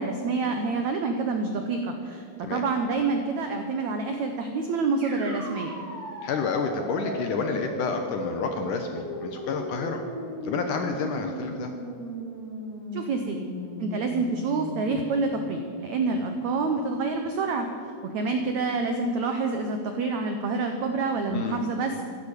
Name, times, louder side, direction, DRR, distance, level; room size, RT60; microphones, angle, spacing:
voice 1, 0.0-2.2 2.5-5.7 12.9-13.4 13.8-17.7 18.0-21.9, right 4 dB, 80° right, 5 dB, 1.6 m, -27 dB
sound 1, 5.0-14.9, equal, 35° right, 5.7 m, -37 dB
voice 2, 6.2-10.0 10.4-11.7 21.3-21.6, left 5 dB, 70° left, 5 dB, 2.1 m, -29 dB
15.0 x 11.5 x 8.2 m, 2.4 s
omnidirectional pair, 4.7 m